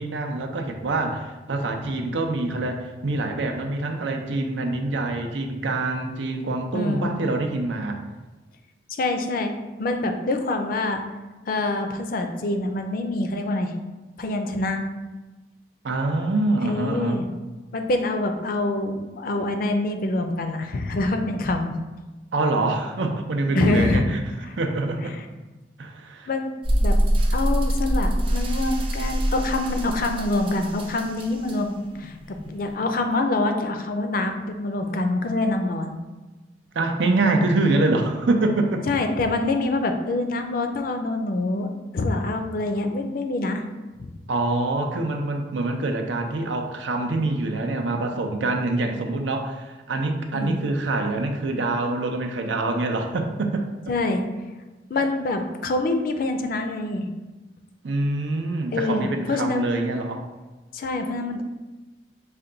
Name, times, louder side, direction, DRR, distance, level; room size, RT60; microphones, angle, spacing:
voice 1, 0.0-8.0 15.8-17.2 22.3-24.2 24.5-25.2 25.8-26.3 36.7-38.9 44.3-53.7 57.8-60.3, right 2 dB, 80° right, 4 dB, 0.6 m, -25 dB
voice 2, 6.7-7.2 9.0-9.5 9.8-11.0 11.5-13.7 14.2-14.8 16.6-17.3 17.7-21.7 23.5-24.0 24.4-24.5 25.0-25.3 26.3-26.5 26.8-27.0 27.3-36.0 38.9-43.6 44.0-44.1 50.3-50.6 53.9-54.2 54.9-57.1 58.7-59.7 60.7-61.4, left 2 dB, 50° left, 5 dB, 0.4 m, -25 dB
sound 1, 26.6-32.8, equal, 30° right, 0.5 m, -25 dB
5.7 x 2.2 x 3.8 m, 1.2 s
head